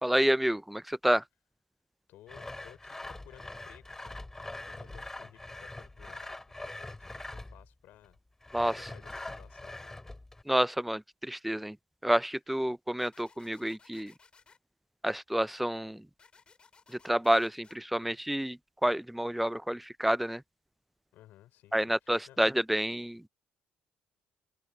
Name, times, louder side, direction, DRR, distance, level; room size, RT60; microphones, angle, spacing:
voice 1, 0.0-1.2 8.5-8.7 10.5-11.8 12.0-14.1 15.0-16.0 17.0-20.4 21.7-23.2, right 1 dB, 5° right, 0.4 m, -29 dB
voice 2, 2.1-8.2 8.6-9.9 21.1-22.4, left 14 dB, 80° left, 4.9 m, -57 dB
Sawing, 2.3-7.7 8.4-10.4, left 2 dB, 15° left, 5.1 m, -43 dB
sound 1, 13.0-14.6 16.2-17.8, left 5 dB, 35° left, 4.2 m, -60 dB
cardioid pair, 90°, 3 cm